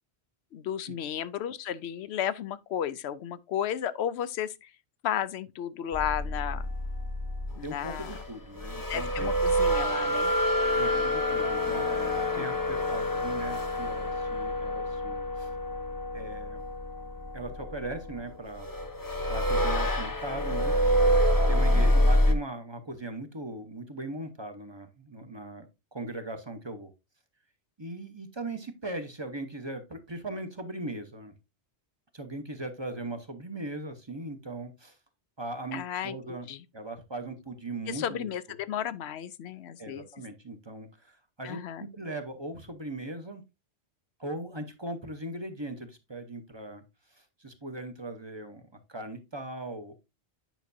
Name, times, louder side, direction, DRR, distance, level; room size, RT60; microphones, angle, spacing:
voice 1, 0.5-4.7 5.0-6.7 7.6-8.1 8.9-10.3 12.3-12.5 21.7-22.1 35.7-36.6 37.9-40.1 41.4-41.9, left 10 dB, 90° left, 0.9 m, -33 dB
sound 1, 5.9-22.3, equal, 20° left, 0.7 m, -27 dB
voice 2, 7.6-9.3 10.7-15.5 16.1-16.6 17.3-18.7 19.3-21.2 21.5-25.7 25.9-26.9 27.8-31.3 32.1-35.0 35.4-36.5 36.7-38.6 39.8-43.4 44.2-46.8 47.1-48.6 48.9-50.0, right 2 dB, 25° right, 0.9 m, -39 dB
9.1 x 5.7 x 2.7 m
omnidirectional pair, 1.1 m